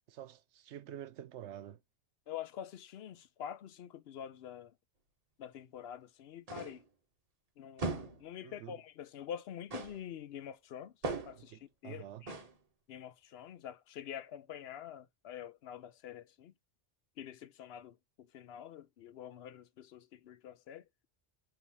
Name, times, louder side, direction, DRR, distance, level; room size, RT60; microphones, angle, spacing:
voice 1, 0.1-1.8 8.4-8.8 11.3-12.3, right 11 dB, 85° right, 0.9 m, -48 dB
voice 2, 2.3-4.7 5.4-6.8 7.6-10.9 11.3-12.3 12.9-16.5 17.2-20.8, left 9 dB, 65° left, 0.8 m, -46 dB
sound 1, 6.5-6.9 7.8-8.3 9.7-10.1 11.0-11.5 12.3-12.6, right 3 dB, 35° right, 0.9 m, -39 dB
5.3 x 2.9 x 2.9 m
omnidirectional pair, 1.2 m